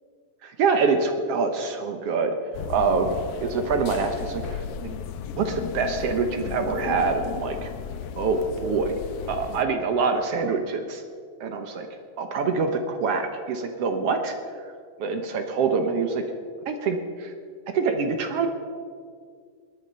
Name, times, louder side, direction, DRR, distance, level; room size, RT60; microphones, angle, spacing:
voice 1, 0.4-2.3 2.7-4.6 5.4-7.7 8.2-8.9 9.3-11.0 11.4-11.9 12.2-14.3 15.0-16.2 16.7-17.3 17.7-18.5, right 4 dB, 65° right, 6 dB, 1.6 m, -25 dB
sound 1, 2.5-9.6, left 7 dB, 75° left, 1.4 m, -34 dB
20.0 x 10.0 x 5.5 m, 2.1 s
omnidirectional pair, 3.5 m